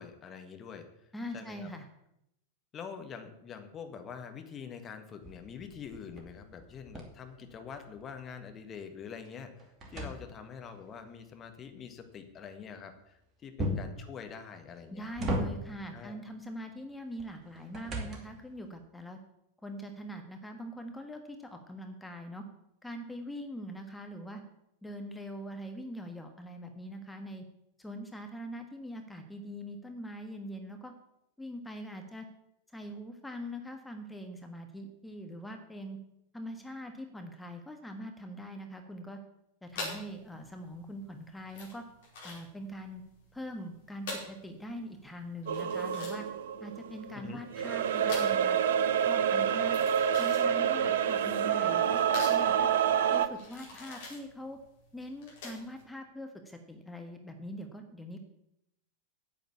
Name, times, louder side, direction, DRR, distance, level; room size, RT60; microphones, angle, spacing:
voice 1, 0.0-1.7 2.7-15.1 15.8-16.2 47.1-47.4, left 6 dB, 25° left, 6 dB, 1.5 m, -45 dB
voice 2, 1.1-1.9 13.6-13.7 14.9-19.2 19.6-22.4 22.8-24.4 24.8-27.4 27.8-30.9 31.4-32.3 32.7-36.0 36.3-39.2 39.6-41.9 42.2-43.0 43.3-46.3 46.6-48.6 49.0-49.8 50.2-52.0 52.3-52.7 53.1-54.6 54.9-58.2, equal, 5° left, 4 dB, 1.4 m, -42 dB
sound 1, 5.2-8.1 8.5-10.8 13.6-14.0 14.7-15.9 17.2-18.5, equal, 25° right, 2.6 m, -37 dB
sound 2, 39.7-55.8, left 2 dB, 55° left, 4.9 m, -44 dB
sound 3, 45.5-47.1 47.5-53.3, right 8 dB, 55° right, 0.7 m, -28 dB
9.3 x 7.9 x 8.4 m, 0.81 s
figure-of-eight pair, 90°, 0 cm